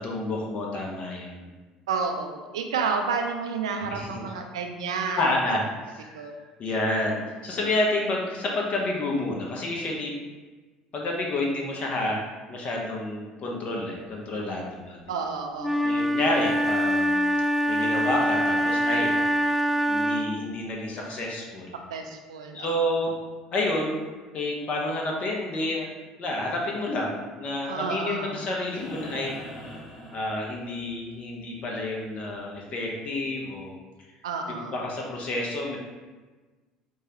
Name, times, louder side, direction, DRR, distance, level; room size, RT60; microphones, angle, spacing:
voice 1, 0.0-1.5 3.8-4.2 5.2-6.3 6.6-10.1 10.9-15.1 15.8-17.2 17.7-19.2 19.9-21.7 22.5-23.2 23.5-24.0 24.3-25.9 26.2-29.3 30.1-33.7 34.6-35.8, left 1 dB, 45° left, -1 dB, 0.7 m, -29 dB
voice 2, 1.9-5.6 6.1-6.4 15.1-16.0 21.9-22.9 27.6-28.4 34.2-34.7, right 5 dB, 80° right, 4 dB, 0.4 m, -30 dB
Wind instrument woodwind instrument, 15.6-20.4, equal, ahead, 0.3 m, -24 dB
sound 1, 28.6-30.9 32.8-32.9, equal, 25° left, 1.4 m, -42 dB
4.7 x 2.3 x 2.9 m, 1.3 s
hypercardioid pair, 65°, 3 cm